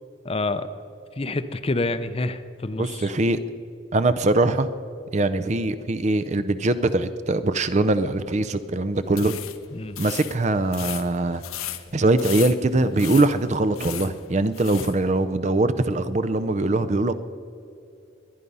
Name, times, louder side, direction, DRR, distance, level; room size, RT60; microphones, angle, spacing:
voice 1, 0.2-0.7 1.2-3.1 9.7-10.0, left 2 dB, 25° left, 11 dB, 0.6 m, -27 dB
voice 2, 2.8-3.4 3.9-4.7 5.1-9.4 10.0-11.4 11.9-17.1, right 2 dB, 35° right, 12 dB, 0.5 m, -22 dB
sound 1, 9.1-15.0, left 13 dB, 85° left, 0.9 m, -37 dB
22.5 x 10.0 x 5.5 m, 2.6 s
head